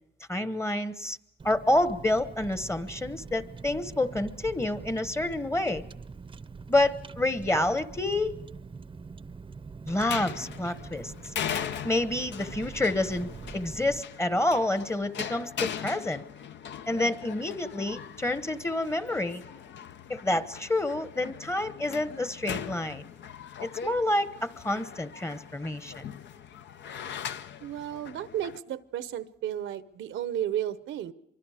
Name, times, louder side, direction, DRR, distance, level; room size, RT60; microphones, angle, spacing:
voice 1, 0.3-1.2 1.4-5.8 6.7-8.3 9.9-11.1 11.8-16.2 16.9-19.4 20.1-23.0 23.6-26.1, left 1 dB, 15° left, 13 dB, 1.1 m, -28 dB
Car, 1.4-14.0, right 4 dB, 25° right, 0.7 m, -44 dB
sound 1, 9.9-28.6, left 8 dB, 65° left, 0.8 m, -40 dB
voice 2, 27.6-31.1, right 11 dB, 75° right, 14 dB, 0.9 m, -33 dB
25.0 x 24.0 x 4.9 m, 0.80 s
cardioid pair, 90°, 20 cm